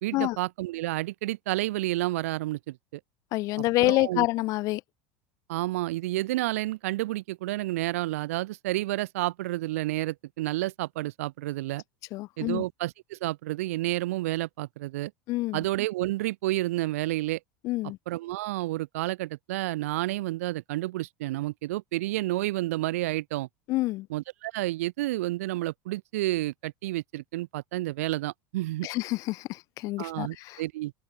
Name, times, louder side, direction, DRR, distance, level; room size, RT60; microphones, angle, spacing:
voice 1, 0.0-3.0 3.8-4.3 5.5-11.8 12.4-15.1 15.5-17.4 18.1-23.5 24.1-28.9 30.0-30.9, right 17 dB, 85° right, 2.0 m, -30 dB
voice 2, 3.3-4.8 12.1-12.6 15.3-15.6 17.6-18.0 23.7-24.1 28.8-30.6, left 19 dB, 50° left, 2.3 m, -27 dB
open air
supercardioid pair, 145°, 8 cm